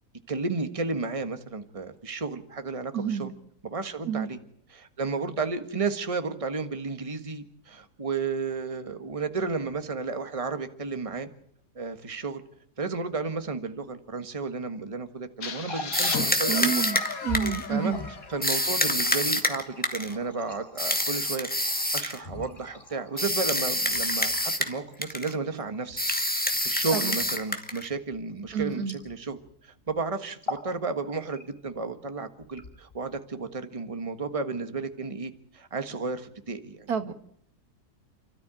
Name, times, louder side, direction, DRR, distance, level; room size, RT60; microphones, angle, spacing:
voice 1, 0.3-3.3 3.6-4.4 4.7-11.3 11.7-12.4 12.8-16.8 17.7-17.9 18.3-21.5 21.9-26.0 26.6-29.4 29.6-37.1, right 4 dB, 20° right, 8 dB, 1.5 m, -33 dB
voice 2, 2.9-3.3 4.1-4.3 16.2-18.0 26.9-27.2 28.5-29.0 36.9-37.1, right 8 dB, 70° right, 9 dB, 2.0 m, -29 dB
sound 1, 15.4-19.1, left 6 dB, 60° left, 1.9 m, -36 dB
Water tap faucet, 15.5-29.5 29.8-30.0 30.3-30.8 31.1-31.7 32.4-33.2, left 2 dB, 40° left, 5.9 m, -43 dB
sound 2, 15.9-17.7 18.4-20.1 20.8-22.2 23.2-24.8 25.0-25.3 26.0-27.9, left 1 dB, 5° left, 1.8 m, -27 dB
29.5 x 13.0 x 9.1 m, 0.68 s
omnidirectional pair, 1.7 m